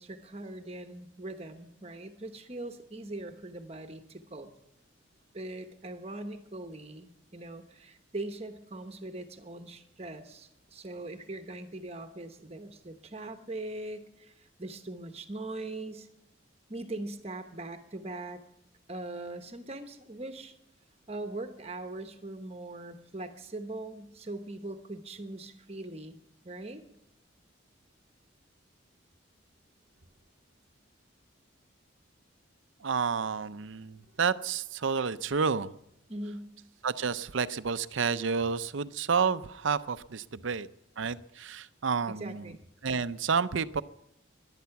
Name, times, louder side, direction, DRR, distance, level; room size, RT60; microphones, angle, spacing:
voice 1, 0.0-4.5 5.3-16.1 16.7-18.4 18.9-20.5 21.1-26.2 26.4-26.8 36.1-36.5 42.1-42.6, right 2 dB, 30° right, 7 dB, 1.0 m, -41 dB
voice 2, 32.8-35.7 36.8-40.7 41.0-42.5 42.8-43.8, right 5 dB, 70° right, 14 dB, 0.6 m, -30 dB
17.5 x 11.5 x 5.9 m, 0.80 s
head